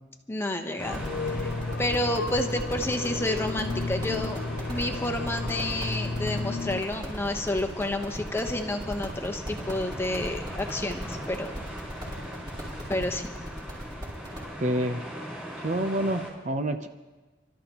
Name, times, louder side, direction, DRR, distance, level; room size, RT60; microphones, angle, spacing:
voice 1, 0.3-1.0 1.3-1.5 1.8-4.4 4.7-11.6 12.9-13.3, left 1 dB, 15° left, 4 dB, 1.0 m, -30 dB
sound 1, 0.8-6.8, left 3 dB, 85° left, 0.7 m, -33 dB
sound 2, 0.8-16.3, equal, 10° right, 4.6 m, -40 dB
sound 3, 0.8-14.5, equal, 25° right, 5.0 m, -39 dB
voice 2, 14.6-15.0 15.6-16.9, right 1 dB, 40° right, 7 dB, 0.7 m, -27 dB
30.0 x 13.0 x 3.0 m, 1.2 s
head